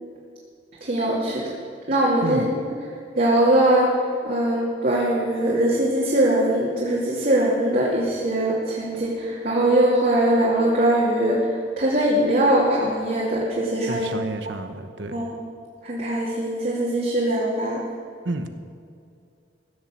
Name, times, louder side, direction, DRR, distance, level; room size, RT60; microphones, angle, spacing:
voice 1, 0.8-1.5 1.9-2.4 3.2-4.0 4.2-11.5 11.8-14.1 15.1-15.3 15.8-17.8, right 1 dB, 50° right, -6 dB, 2.6 m, -21 dB
voice 2, 2.2-2.6 13.9-15.3 18.2-18.5, right 2 dB, 85° right, 8 dB, 1.0 m, -30 dB
16.0 x 7.3 x 7.3 m, 2.3 s
head